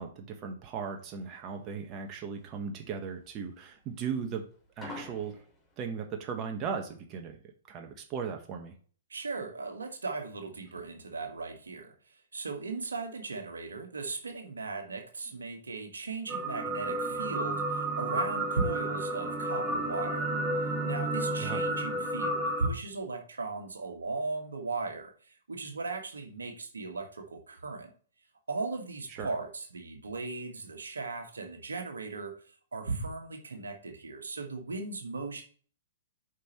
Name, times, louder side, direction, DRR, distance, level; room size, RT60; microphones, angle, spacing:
voice 1, 0.0-4.4 4.8-5.4 5.8-7.4 7.7-8.7 21.4-21.6 29.2-29.3, right 6 dB, 35° right, 4 dB, 1.4 m, -37 dB
sound 1, 0.9-5.9, left 2 dB, 15° left, 3.1 m, -48 dB
voice 2, 9.1-11.9 12.3-20.3 20.8-27.9 28.5-32.3 32.7-35.4, right 3 dB, 80° right, 4 dB, 1.6 m, -37 dB
sound 2, 16.3-22.7, right 1 dB, 15° right, 2.4 m, -31 dB
8.2 x 5.5 x 3.1 m, 0.42 s
figure-of-eight pair, 115°, 0 cm